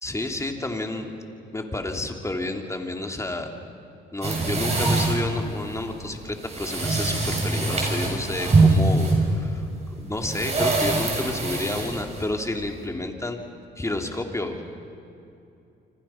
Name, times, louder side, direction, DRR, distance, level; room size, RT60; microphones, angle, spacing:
voice 1, 0.0-1.1 1.5-3.5 4.1-13.4 13.8-14.7, left 2 dB, 15° left, 3 dB, 2.9 m, -30 dB
sound 1, 4.2-12.9, right 3 dB, 35° right, 7.4 m, -23 dB
27.5 x 26.0 x 5.8 m, 2.7 s
cardioid pair, 90°, 20 cm